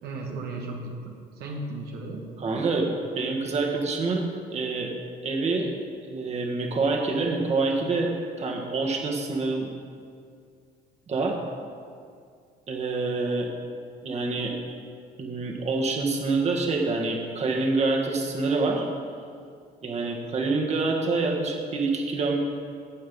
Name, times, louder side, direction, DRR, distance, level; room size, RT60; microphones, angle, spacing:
voice 1, 0.0-2.3 20.0-20.2, right 2 dB, 75° right, 0 dB, 1.4 m, -36 dB
voice 2, 2.4-2.9 3.2-4.9 5.2-5.7 6.1-8.1 8.4-9.7 11.1-11.4 12.7-13.5 14.0-14.5 15.2-18.9 19.8-22.4, right 3 dB, 40° right, 0 dB, 1.8 m, -26 dB
16.5 x 5.7 x 5.5 m, 2.2 s
cardioid pair, 110°, 17 cm